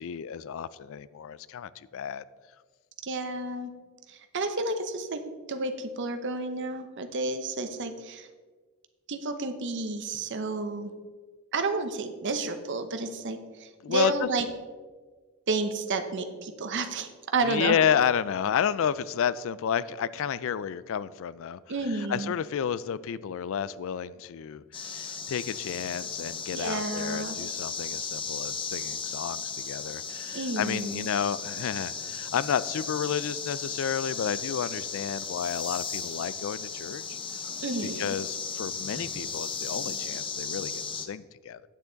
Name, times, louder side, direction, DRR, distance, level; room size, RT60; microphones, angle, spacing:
voice 1, 0.0-2.2 13.8-14.3 17.4-21.6 21.9-37.2 37.8-41.7, left 8 dB, 60° left, 18 dB, 0.3 m, -31 dB
voice 2, 3.0-3.7 4.1-5.2 5.5-8.3 9.1-10.9 11.5-14.5 15.5-17.8 21.7-22.3 26.5-27.4 30.3-31.1 37.6-38.2, right 3 dB, 55° right, 8 dB, 0.8 m, -31 dB
sound 1, 24.7-41.1, left 5 dB, 25° left, 0.6 m, -36 dB
9.0 x 8.0 x 3.9 m, 1.4 s
head